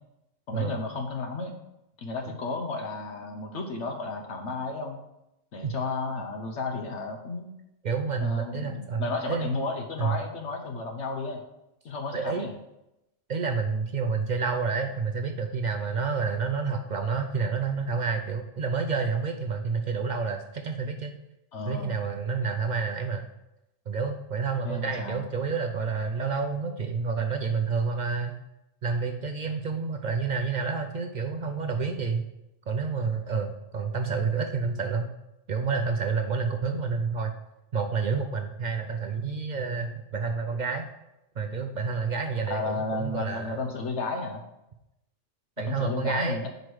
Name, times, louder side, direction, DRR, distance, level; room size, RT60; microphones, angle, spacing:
voice 1, 0.5-1.5 2.0-5.0 5.5-7.5 8.2-11.4 11.8-12.5 21.5-22.0 24.6-25.2 42.5-44.4 45.6-46.5, left 3 dB, 65° left, 3 dB, 1.1 m, -33 dB
voice 2, 7.8-9.6 10.0-10.2 12.1-12.5 13.3-21.2 21.7-23.3 23.9-28.4 28.8-32.3 32.7-35.1 35.5-37.3 37.7-40.9 41.4-43.6 45.6-46.4, right 5 dB, 60° right, 5 dB, 0.4 m, -29 dB
5.2 x 4.7 x 6.1 m, 0.89 s
omnidirectional pair, 1.4 m